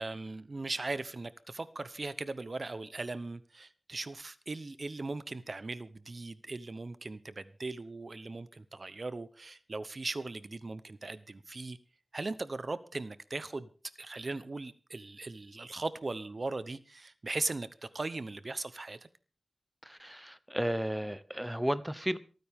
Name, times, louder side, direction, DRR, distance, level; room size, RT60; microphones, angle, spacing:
voice 1, 0.0-11.8 12.1-13.7 14.0-17.7 17.9-19.0, right 3 dB, 45° right, 0.8 m, -38 dB
voice 2, 19.9-22.2, equal, 5° right, 0.7 m, -33 dB
27.5 x 9.4 x 3.6 m
wide cardioid pair, 80°, 0 cm